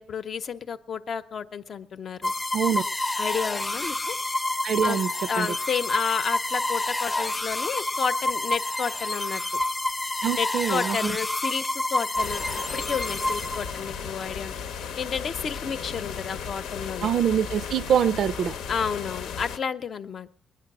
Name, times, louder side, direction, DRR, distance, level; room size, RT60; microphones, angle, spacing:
voice 1, 0.0-2.3 3.2-4.2 4.8-5.0 5.3-9.4 10.4-12.4 12.7-14.6 15.0-17.1 18.7-20.4, left 6 dB, 55° left, 0.8 m, -31 dB
sound 1, 2.2-14.1, left 2 dB, 20° left, 0.7 m, -28 dB
voice 2, 2.5-2.8 4.6-5.1 5.4-5.5 10.2-11.2 17.0-18.6, right 8 dB, 60° right, 0.5 m, -24 dB
sound 2, 12.2-19.6, left 7 dB, 90° left, 0.9 m, -35 dB
20.5 x 9.9 x 6.1 m
cardioid pair, 90°, 0 cm